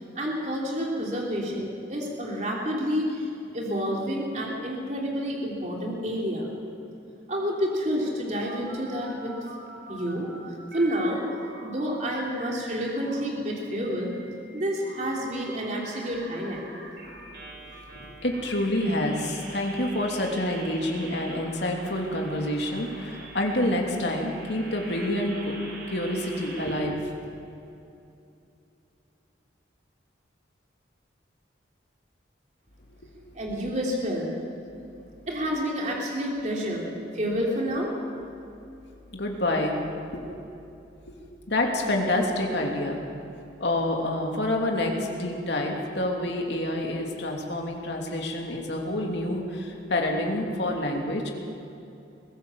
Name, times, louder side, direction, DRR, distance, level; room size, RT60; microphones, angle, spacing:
voice 1, 0.1-6.5 7.3-9.3 9.9-10.3 10.7-11.2 11.6-14.1 14.5-16.7 33.3-34.3 35.3-37.9, equal, 40° right, -2 dB, 3.2 m, -29 dB
sound 1, 7.7-10.4 10.7-13.3 13.6-26.8, right 2 dB, 55° right, 4.6 m, -45 dB
voice 2, 17.9-25.6 25.9-27.0 33.3-33.4 39.1-39.9 41.1-41.2 41.5-43.0 43.6-44.9 45.2-51.3, left 1 dB, 65° left, 1 dB, 3.0 m, -27 dB
22.5 x 16.5 x 7.3 m, 2.7 s
head